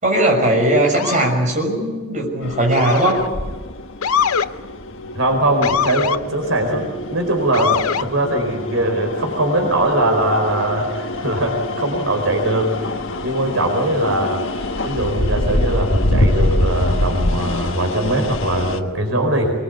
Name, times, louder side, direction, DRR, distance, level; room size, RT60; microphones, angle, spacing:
voice 1, 0.0-3.2, right 1 dB, 35° right, 0 dB, 6.5 m, -18 dB
Motor vehicle (road) / Siren, 0.9-1.3 2.7-3.3 4.0-4.5 5.6-6.2 7.5-8.1, left 7 dB, 90° left, 0.7 m, -22 dB
sound 1, 2.4-18.8, left 1 dB, 65° left, 1.5 m, -25 dB
voice 2, 5.1-12.9 13.2-14.4 14.8-19.5, right 1 dB, 65° right, 2 dB, 4.7 m, -21 dB
24.5 x 21.5 x 8.4 m, 1.3 s
head